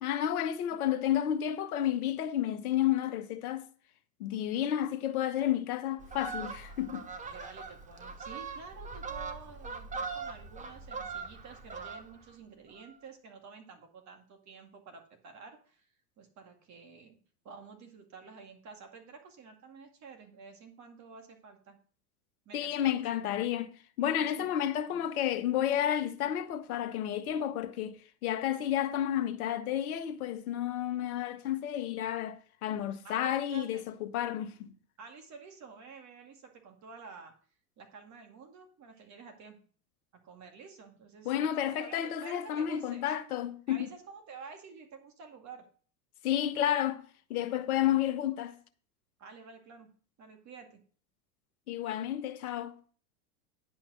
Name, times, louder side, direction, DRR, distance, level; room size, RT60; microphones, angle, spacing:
voice 1, 0.0-3.6 4.2-7.1 22.5-23.7 24.0-28.0 28.2-34.7 41.2-43.9 46.2-47.0 47.3-48.5 51.7-52.7, left 11 dB, 70° left, 1.1 m, -31 dB
Fowl, 6.0-12.3 12.7-12.9, right 4 dB, 15° right, 1.1 m, -41 dB
voice 2, 7.2-15.9 16.2-17.2 17.4-21.8 22.5-23.3 24.2-24.6 24.9-25.0 33.0-33.8 35.0-37.3 37.8-39.6 40.2-43.1 43.7-45.7 47.7-47.9 49.2-49.9 50.2-50.8, right 5 dB, 40° right, 2.2 m, -50 dB
10.0 x 5.2 x 6.1 m
hypercardioid pair, 95°, 45 cm